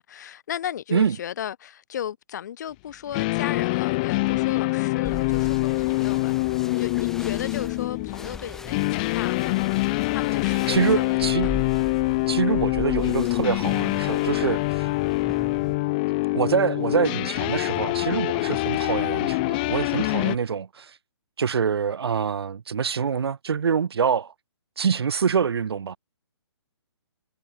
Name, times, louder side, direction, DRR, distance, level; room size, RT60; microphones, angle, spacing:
voice 1, 0.0-9.5 10.1-11.5, left 10 dB, 40° left, 7.6 m, -35 dB
sound 1, 3.1-20.4, left 23 dB, 20° left, 1.1 m, -25 dB
sound 2, 5.0-15.7, left 3 dB, 5° left, 7.2 m, -39 dB
voice 2, 10.7-11.5 12.3-14.9 16.3-20.9 21.4-24.3 24.8-26.0, right 6 dB, 60° right, 2.0 m, -25 dB
hypercardioid pair, 170°, 15 cm